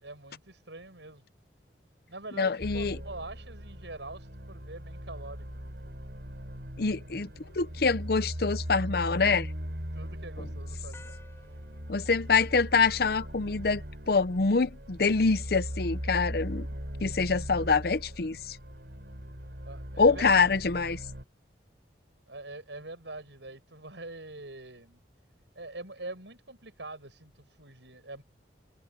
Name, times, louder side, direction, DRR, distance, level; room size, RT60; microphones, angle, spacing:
voice 1, 0.0-1.2 2.1-5.7 9.9-11.2 19.6-20.3 22.3-25.0 25.6-28.2, right 2 dB, 80° right, 6.9 m, -44 dB
voice 2, 2.4-3.0 6.8-7.3 7.5-9.5 10.4-10.5 11.9-16.7 17.0-18.6 20.0-21.0, left 4 dB, 55° left, 0.7 m, -25 dB
sound 1, 2.6-21.2, equal, 65° right, 7.4 m, -39 dB
sound 2, 10.9-13.5, left 2 dB, 15° left, 5.7 m, -57 dB
head